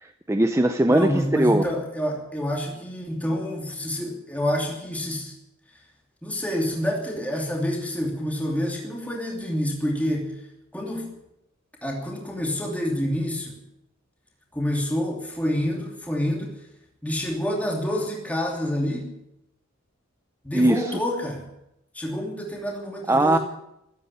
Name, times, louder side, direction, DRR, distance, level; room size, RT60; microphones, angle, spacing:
voice 1, 0.0-1.7 20.5-21.0 23.1-23.4, right 1 dB, 15° right, 6 dB, 0.7 m, -20 dB
voice 2, 0.9-5.3 6.2-10.3 10.7-11.2 11.8-13.5 14.5-16.5 17.0-19.1 20.4-21.4 21.9-23.4, equal, 5° left, -1 dB, 2.8 m, -27 dB
15.0 x 9.8 x 10.0 m, 0.84 s
head